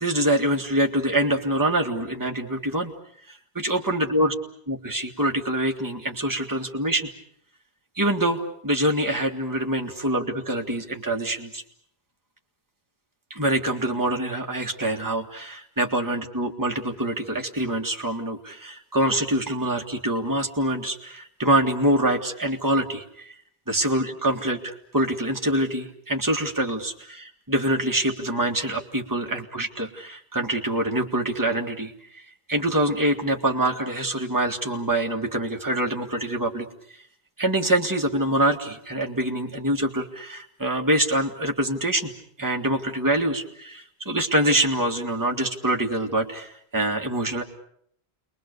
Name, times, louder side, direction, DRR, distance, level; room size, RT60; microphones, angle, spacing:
voice 1, 0.0-2.9 3.3-4.3 4.7-7.1 8.0-11.6 13.3-23.3 23.7-32.2 32.5-36.7 37.4-42.1 42.4-47.4, right 1 dB, 20° right, 1 dB, 2.0 m, -25 dB
29.5 x 22.5 x 6.7 m, 0.68 s
omnidirectional pair, 1.1 m